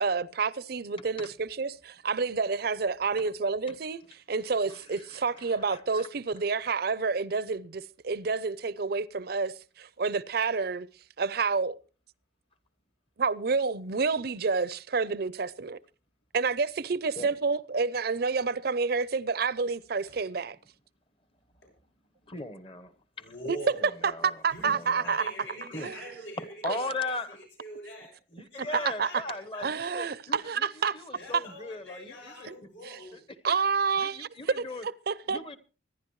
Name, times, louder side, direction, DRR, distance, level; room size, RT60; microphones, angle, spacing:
voice 1, 0.0-10.9 11.2-11.8 13.2-15.8 16.3-20.6 23.5-23.6 23.8-25.3 25.8-26.1 26.7-26.8 28.8-29.2 29.6-31.4 32.4-32.6 32.8-33.0 33.4-35.6, right 4 dB, 55° right, 0.6 m, -29 dB
voice 2, 4.7-6.1 17.2-17.3 22.3-23.3 23.7-25.2 25.7-25.9 26.4-27.4 28.3-32.5 33.1-33.2 34.0-34.8 35.3-35.6, left 2 dB, 30° left, 1.0 m, -39 dB
voice 3, 23.2-23.9 24.5-24.7 25.0-28.1 28.5-29.9 31.1-33.3, equal, 80° left, 6.7 m, -44 dB
25.0 x 11.0 x 3.1 m
head